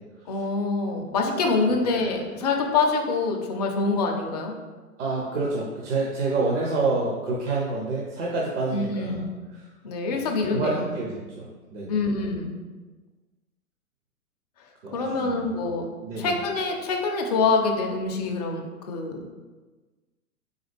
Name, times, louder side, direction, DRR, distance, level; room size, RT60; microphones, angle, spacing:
voice 1, 0.3-4.5 8.7-9.3 9.8-10.8 11.9-12.5 14.6-14.7 14.9-15.9 16.2-19.2, left 3 dB, 30° left, 2 dB, 0.5 m, -25 dB
voice 2, 5.0-9.2 10.5-12.0 14.8-15.4 16.0-16.3, right 3 dB, 50° right, -3 dB, 0.9 m, -28 dB
3.9 x 3.7 x 3.3 m, 1.3 s
figure-of-eight pair, 115°, 45 cm